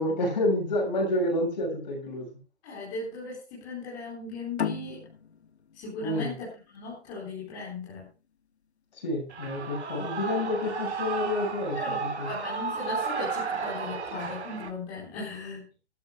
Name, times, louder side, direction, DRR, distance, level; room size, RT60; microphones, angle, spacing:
voice 1, 0.0-2.3 6.0-6.3 8.9-12.3, left 1 dB, 40° left, 2 dB, 7.2 m, -29 dB
voice 2, 2.6-5.0 5.7-8.1 11.7-12.0 12.3-15.7, left 3 dB, 15° left, -6 dB, 4.0 m, -37 dB
sound 1, 4.6-7.8, left 7 dB, 70° left, 1.5 m, -36 dB
Shout / Cheering, 9.3-14.7, right 5 dB, 70° right, 4.2 m, -33 dB
21.0 x 13.0 x 2.3 m, 0.33 s
hypercardioid pair, 180°, 34 cm